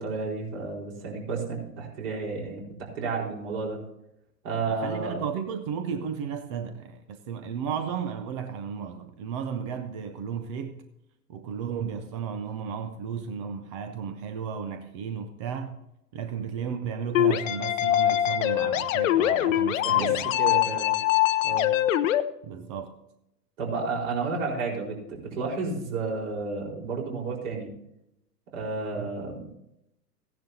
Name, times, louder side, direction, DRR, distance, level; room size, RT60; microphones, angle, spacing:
voice 1, 0.0-3.8 4.4-5.2 19.8-21.0 21.4-21.7 23.6-27.7 28.5-29.5, right 4 dB, 50° right, 4.4 m, -32 dB
voice 2, 4.7-10.8 11.3-15.8 16.1-20.3 22.4-22.9 29.0-29.1, right 7 dB, 20° right, 0.4 m, -34 dB
sound 1, 17.1-22.2, left 12 dB, 55° left, 0.7 m, -23 dB
15.5 x 10.5 x 2.7 m
hypercardioid pair, 120°, 49 cm